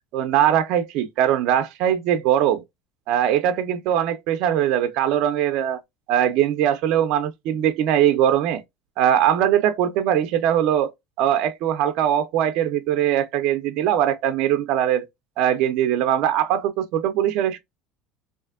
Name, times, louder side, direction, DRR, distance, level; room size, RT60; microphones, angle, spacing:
voice 1, 0.1-2.6 3.1-5.8 6.1-8.6 9.0-10.9 11.2-15.0 15.4-17.6, right 10 dB, 55° right, 0.4 m, -21 dB
3.2 x 2.5 x 2.3 m
cardioid pair, 155°, 0 cm